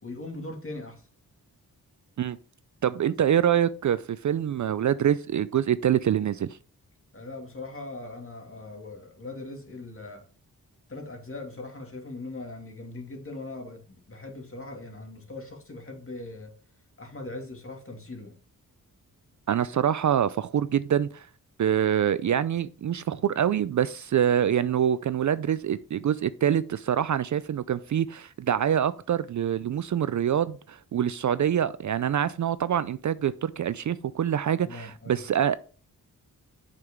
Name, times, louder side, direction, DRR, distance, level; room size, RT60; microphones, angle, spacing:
voice 1, 0.0-1.0 3.1-3.2 7.1-10.3 10.9-16.5 17.0-18.4 34.6-35.2, left 2 dB, 35° left, 2.2 m, -40 dB
voice 2, 2.8-6.6 19.5-21.3 21.6-35.6, right 9 dB, 50° right, 0.4 m, -25 dB
7.6 x 5.9 x 3.6 m
cardioid pair, 70°, 37 cm